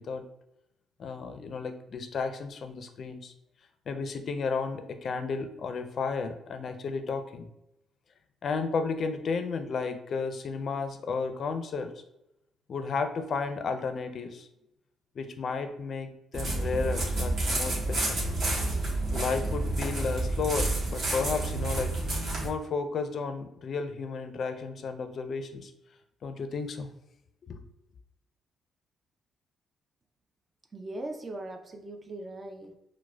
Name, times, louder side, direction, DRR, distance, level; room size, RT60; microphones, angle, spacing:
voice 1, 1.0-3.3 3.9-7.5 8.4-11.9 12.7-14.5 15.2-18.2 19.1-21.9 22.4-25.7 26.2-26.9 27.4-27.6, left 4 dB, 55° left, 7 dB, 0.4 m, -33 dB
sound 1, 16.3-22.5, right 2 dB, 55° right, 1.3 m, -29 dB
voice 2, 30.7-32.8, right 2 dB, 30° right, 4 dB, 0.4 m, -39 dB
4.7 x 2.1 x 2.2 m, 0.86 s
cardioid pair, 90°, 0 cm